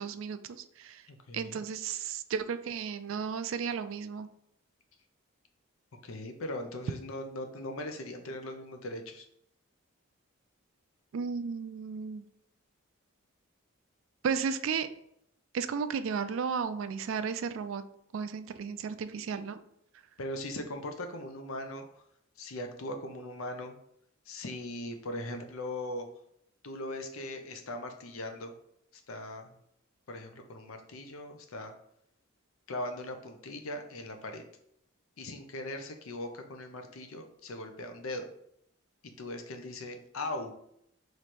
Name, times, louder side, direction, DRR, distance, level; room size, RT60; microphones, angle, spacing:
voice 1, 0.0-1.0 1.3-4.3 11.1-12.3 14.2-14.9 15.5-17.8 18.1-19.6, right 6 dB, 70° right, 11 dB, 0.3 m, -34 dB
voice 2, 1.1-1.6 6.0-9.3 20.2-21.8 22.4-23.8 24.3-26.1 26.6-28.5 29.1-29.5 30.1-31.7 32.7-34.4 35.2-38.3 39.2-40.5, left 1 dB, 80° left, 5 dB, 0.6 m, -39 dB
3.2 x 3.1 x 4.2 m, 0.71 s
head